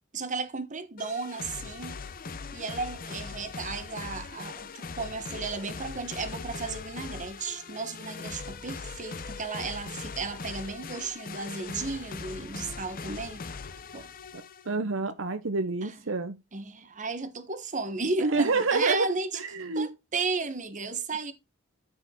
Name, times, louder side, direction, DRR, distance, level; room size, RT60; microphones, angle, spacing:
voice 1, 0.1-1.9 2.5-13.4 13.9-14.1 15.8-16.0 16.5-19.4 19.7-21.3, right 4 dB, 35° right, 1.2 m, -34 dB
sound 1, 1.0-14.7, left 4 dB, 45° left, 0.7 m, -40 dB
voice 2, 14.3-16.4 18.2-19.9, right 3 dB, 65° right, 0.8 m, -28 dB
13.5 x 4.9 x 3.8 m
head